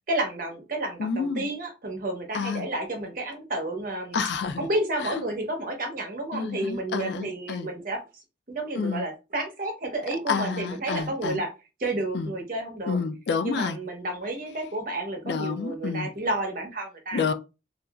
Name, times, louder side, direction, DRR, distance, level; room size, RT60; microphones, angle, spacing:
voice 1, 0.1-4.2 4.6-8.2 8.5-11.5 11.8-13.0 13.4-17.2, right 2 dB, 50° right, 0.8 m, -31 dB
voice 2, 1.0-1.5 2.3-2.7 4.1-4.7 5.0-5.2 6.3-7.7 8.7-9.0 10.3-11.4 12.1-12.3 12.9-13.8 15.2-16.1 17.1-17.3, left 5 dB, 65° left, 0.3 m, -29 dB
2.8 x 2.5 x 2.3 m
head